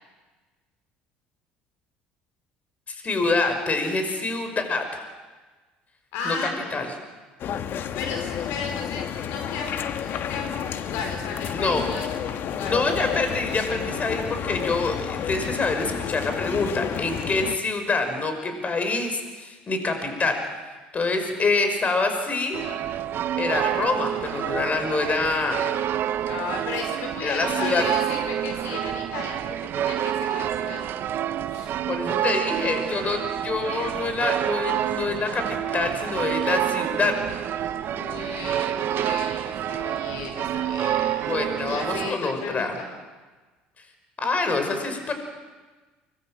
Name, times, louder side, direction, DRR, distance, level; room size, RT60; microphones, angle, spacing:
voice 1, 2.9-5.0 6.2-6.4 6.7-6.9 11.5-11.8 12.7-20.4 20.9-22.6 23.4-25.7 27.2-27.8 31.9-37.2 41.2-42.7 44.2-45.1, left 3 dB, 35° left, 6 dB, 5.6 m, -26 dB
voice 2, 6.1-6.9 7.9-9.7 10.0-12.8 26.2-31.2 31.5-31.7 32.1-32.4 37.6-41.3 41.7-42.9, left 5 dB, 70° left, 3 dB, 4.7 m, -35 dB
sound 1, 7.4-17.6, left 8 dB, 55° left, 1.6 m, -31 dB
sound 2, 22.5-42.1, right 11 dB, 55° right, 1.0 m, -28 dB
25.0 x 21.5 x 7.7 m, 1.3 s
hypercardioid pair, 70°, 4 cm